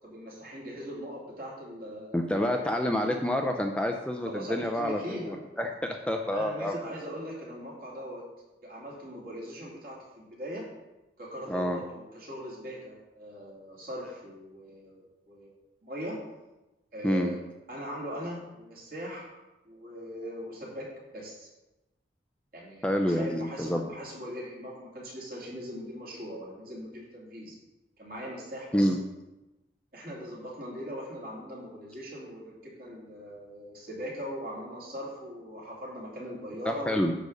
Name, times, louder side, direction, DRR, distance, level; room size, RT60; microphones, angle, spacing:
voice 1, 0.0-2.7 4.2-5.3 6.3-8.2 8.6-10.6 11.2-16.2 16.9-17.4 17.7-19.3 19.6-20.8 21.1-21.5 22.5-27.5 28.0-28.9 29.9-36.9, equal, 50° right, -4 dB, 2.8 m, -40 dB
voice 2, 2.1-6.8 11.5-11.8 17.0-17.3 22.8-23.9 28.7-29.0 36.7-37.1, equal, 5° left, 3 dB, 0.5 m, -28 dB
9.7 x 4.1 x 6.5 m, 1.0 s
head